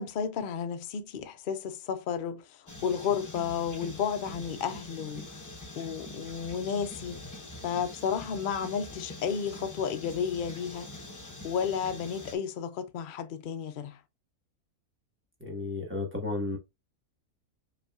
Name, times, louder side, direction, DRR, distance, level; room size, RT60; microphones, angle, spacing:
voice 1, 0.0-7.2 7.6-14.0, left 7 dB, 75° left, 0.4 m, -33 dB
sound 1, 2.7-12.3, left 1 dB, 20° left, 0.6 m, -44 dB
voice 2, 15.4-16.6, left 3 dB, 10° right, 1.2 m, -33 dB
5.2 x 3.2 x 2.3 m
omnidirectional pair, 1.6 m